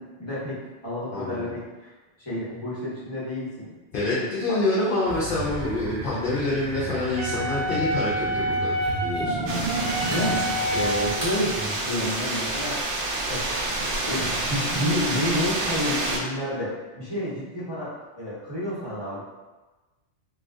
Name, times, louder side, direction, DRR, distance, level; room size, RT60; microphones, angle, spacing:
voice 1, 0.0-1.9 2.2-3.7 4.2-4.6 10.1-13.0 13.3-19.2, left 1 dB, 25° left, -9 dB, 1.1 m, -30 dB
voice 2, 1.1-1.5 3.9-9.4, left 2 dB, 55° left, -7 dB, 0.7 m, -27 dB
sound 1, 5.1-11.4, right 2 dB, 20° right, 0.6 m, -33 dB
Wind instrument woodwind instrument, 7.2-11.3, equal, 85° right, 1.0 m, -28 dB
sound 2, 9.5-16.2, right 2 dB, 60° right, 0.7 m, -28 dB
3.7 x 2.4 x 2.5 m, 1.2 s
omnidirectional pair, 1.2 m